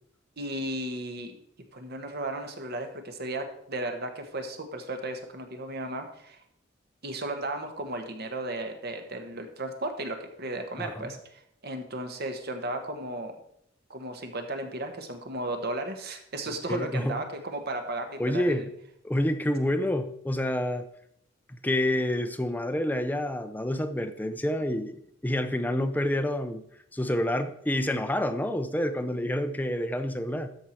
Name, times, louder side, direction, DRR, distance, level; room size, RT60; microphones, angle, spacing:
voice 1, 0.4-1.4 1.7-6.4 7.0-13.3 13.9-18.7, right 2 dB, 55° right, 6 dB, 1.2 m, -35 dB
voice 2, 10.8-11.1 16.5-17.2 18.2-18.7 19.0-20.9 21.5-26.6 26.9-30.6, left 1 dB, 10° left, 8 dB, 0.6 m, -28 dB
13.0 x 4.7 x 4.4 m, 0.71 s
head